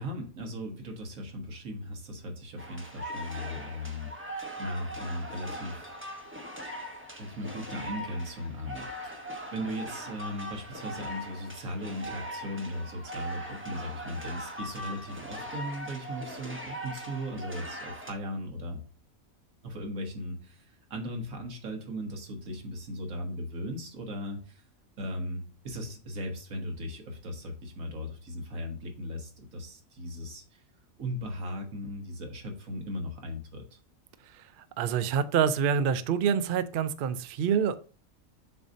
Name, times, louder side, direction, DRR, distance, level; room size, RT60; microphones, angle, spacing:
voice 1, 0.0-4.1 4.6-5.9 7.2-18.8 19.6-24.6 25.0-30.6 31.0-33.8, equal, 70° right, 1.6 m, -37 dB
sound 1, 2.6-18.1, equal, 10° right, 0.8 m, -40 dB
voice 2, 34.3-37.8, right 7 dB, 85° right, 0.4 m, -27 dB
6.9 x 2.7 x 5.1 m
omnidirectional pair, 1.5 m